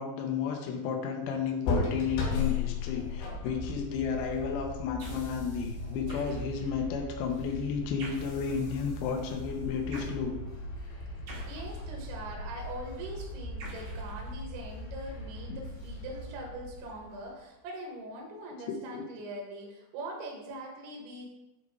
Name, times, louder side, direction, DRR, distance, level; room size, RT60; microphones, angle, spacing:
voice 1, 0.0-10.4 11.3-11.5 15.5-15.6 18.7-19.0, left 6 dB, 90° left, 2 dB, 2.2 m, -33 dB
sound 1, 1.6-17.4, left 2 dB, 70° left, 3.4 m, -37 dB
sound 2, 5.0-5.4 6.1-6.7 8.0-8.5 9.9-10.2 11.3-12.1 13.6-14.7, right 2 dB, 65° right, 3.4 m, -47 dB
voice 2, 11.5-21.3, right 1 dB, 80° right, -1 dB, 3.5 m, -42 dB
8.3 x 4.0 x 3.6 m, 0.95 s
omnidirectional pair, 5.3 m